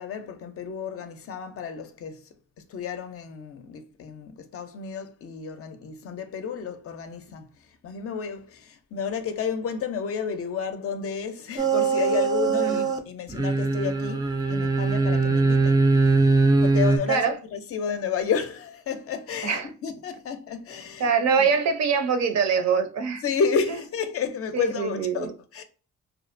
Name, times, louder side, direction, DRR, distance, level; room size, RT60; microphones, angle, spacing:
voice 1, 0.0-2.3 2.7-7.5 7.8-15.8 16.6-17.2 17.5-21.1 21.4-21.5 23.2-25.6, left 6 dB, 50° left, 0.5 m, -31 dB
sound 1, 11.6-13.0 13.3-17.0, right 3 dB, 15° right, 0.4 m, -21 dB
voice 2, 21.0-23.2 24.5-25.3, right 6 dB, 60° right, 0.5 m, -24 dB
2.6 x 2.0 x 2.5 m
cardioid pair, 90°, 30 cm